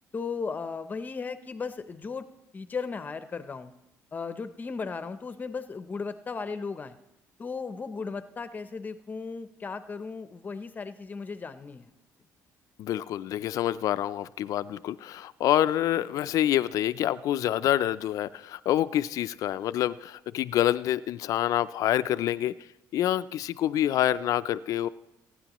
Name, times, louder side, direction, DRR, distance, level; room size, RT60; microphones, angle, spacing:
voice 1, 0.1-2.3 2.5-3.7 4.1-7.0 7.4-11.9, left 5 dB, 30° left, 11 dB, 0.6 m, -36 dB
voice 2, 12.8-22.5 22.9-24.9, left 12 dB, 65° left, 14 dB, 0.4 m, -27 dB
27.0 x 9.9 x 3.0 m, 0.90 s
cardioid pair, 115°, 6 cm